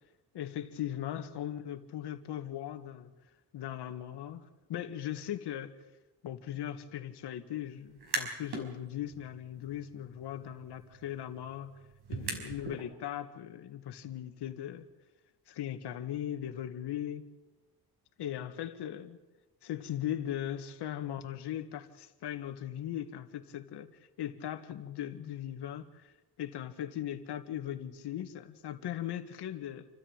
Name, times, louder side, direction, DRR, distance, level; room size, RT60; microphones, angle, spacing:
voice 1, 0.3-3.1 3.5-5.8 6.2-11.8 12.1-14.8 15.5-17.3 18.2-19.2 19.6-23.9 24.2-26.1 26.4-29.9, left 11 dB, 85° left, 8 dB, 2.0 m, -39 dB
sound 1, 7.9-8.7 9.1-12.8, right 4 dB, 75° right, 5.3 m, -41 dB
28.5 x 14.0 x 9.0 m, 1.1 s
cardioid pair, 135°, 39 cm